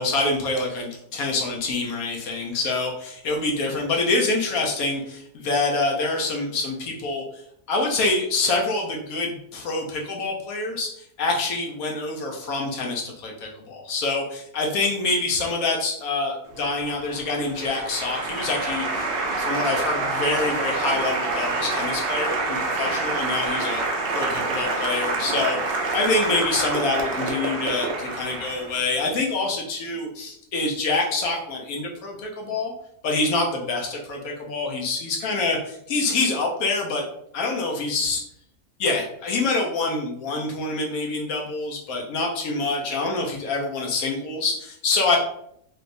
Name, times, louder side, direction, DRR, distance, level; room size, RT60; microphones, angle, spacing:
voice 1, 0.0-7.4 7.7-19.1 19.4-23.8 24.1-32.7 33.0-37.0 37.3-38.2 38.8-45.2, left 3 dB, 70° left, 0 dB, 1.2 m, -26 dB
Applause, 16.5-29.0, right 3 dB, 70° right, 0.5 m, -27 dB
3.2 x 2.7 x 2.5 m, 0.71 s
omnidirectional pair, 1.6 m